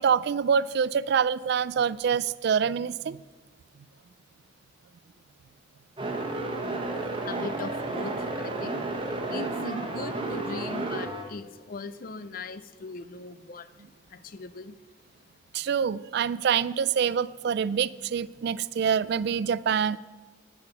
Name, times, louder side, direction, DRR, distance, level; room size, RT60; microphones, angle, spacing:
voice 1, 0.0-3.2 15.5-20.0, right 7 dB, 55° right, 18 dB, 0.3 m, -26 dB
sound 1, 6.0-11.2, right 2 dB, 25° right, 1.1 m, -32 dB
voice 2, 7.2-13.7 14.1-14.8, left 4 dB, 45° left, 14 dB, 0.5 m, -39 dB
10.5 x 10.0 x 5.5 m, 1.2 s
head